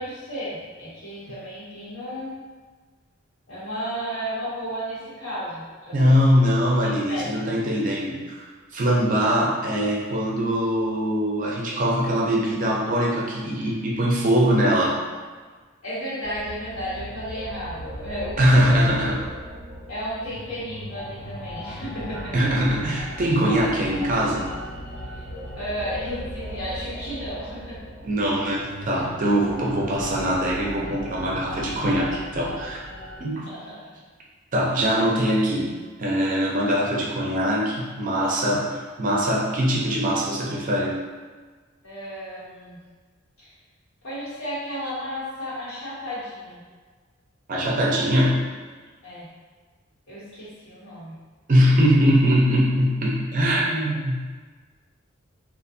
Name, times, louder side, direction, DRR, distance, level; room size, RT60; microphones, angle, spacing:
voice 1, 0.0-2.3 3.5-6.2 6.8-7.2 15.8-19.3 19.9-22.5 25.1-25.2 25.5-27.8 33.3-33.9 41.8-42.8 43.4-43.5 44.0-46.6 49.0-49.3 50.1-51.2, equal, 75° left, -10 dB, 1.3 m, -33 dB
voice 2, 5.9-8.5 8.7-15.0 18.4-19.2 22.3-24.5 28.0-32.8 33.2-33.5 34.5-35.7 36.0-41.0 47.5-48.4 51.5-54.2, equal, 40° right, -3 dB, 0.5 m, -22 dB
sound 1, 16.2-33.2, equal, 10° right, 1.5 m, -37 dB
2.5 x 2.5 x 2.6 m, 1.4 s
head